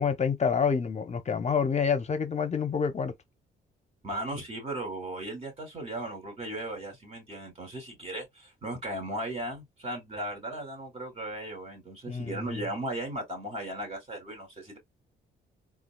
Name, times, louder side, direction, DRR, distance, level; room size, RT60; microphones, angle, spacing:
voice 1, 0.0-3.1 12.1-12.6, left 6 dB, 35° left, 0.9 m, -28 dB
voice 2, 4.0-14.8, right 1 dB, 30° right, 2.8 m, -36 dB
3.9 x 2.4 x 2.3 m
cardioid pair, 90°, 20 cm